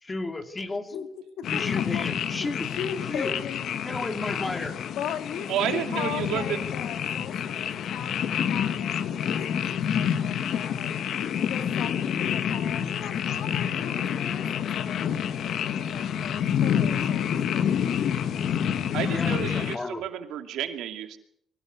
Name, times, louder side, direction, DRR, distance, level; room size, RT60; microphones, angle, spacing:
voice 1, 0.0-0.9 1.5-2.7 3.0-3.4 3.8-4.8 19.1-20.0, left 2 dB, 25° left, 6 dB, 2.9 m, -33 dB
voice 2, 1.4-2.1 2.4-3.6 4.9-10.9 11.4-18.3, left 8 dB, 85° left, 6 dB, 2.9 m, -38 dB
sound 1, 1.4-19.8, left 8 dB, 70° left, 1.2 m, -28 dB
voice 3, 5.5-6.7 18.9-21.2, right 10 dB, 85° right, 6 dB, 2.5 m, -31 dB
24.0 x 16.0 x 8.2 m, 0.68 s
cardioid pair, 90°, 0 cm